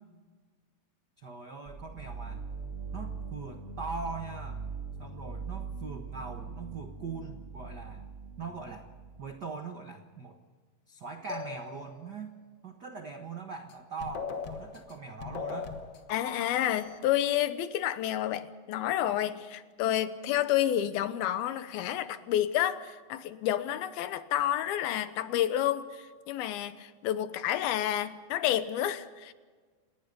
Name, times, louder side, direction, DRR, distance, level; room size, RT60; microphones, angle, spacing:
voice 1, 1.2-2.4 2.9-4.6 5.0-8.0 8.4-8.9 9.2-10.4 10.9-12.4 12.6-15.8, right 4 dB, 85° right, 5 dB, 0.9 m, -41 dB
sound 1, 1.6-9.4, right 5 dB, 50° right, 0.9 m, -41 dB
sound 2, 11.3-12.1 13.7-13.8 14.0-17.0, left 5 dB, 60° left, 1.2 m, -39 dB
voice 2, 16.1-29.3, left 12 dB, 80° left, 12 dB, 2.9 m, -30 dB
28.5 x 19.5 x 5.3 m, 1.4 s
omnidirectional pair, 4.3 m